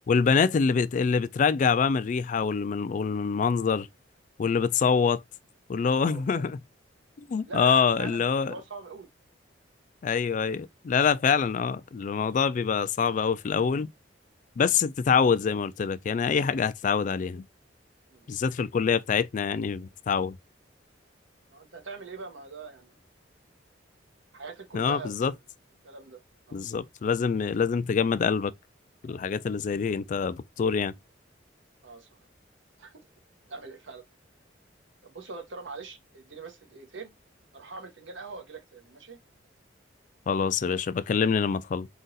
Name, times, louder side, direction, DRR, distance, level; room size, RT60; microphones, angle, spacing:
voice 1, 0.1-3.9 4.4-5.2 5.7-6.6 7.2-8.5 10.0-13.9 14.6-17.4 18.3-20.4 24.7-25.3 26.5-28.5 29.0-30.9 40.3-41.9, left 6 dB, 40° left, 0.3 m, -25 dB
voice 2, 5.8-6.4 7.4-9.1 18.1-18.3 21.5-22.9 24.3-25.4 25.8-26.2 26.5-26.6 31.8-32.1 32.8-32.9 33.5-34.0 35.0-37.1 37.5-39.2, right 4 dB, 80° right, 1.1 m, -42 dB
3.9 x 2.4 x 3.9 m
head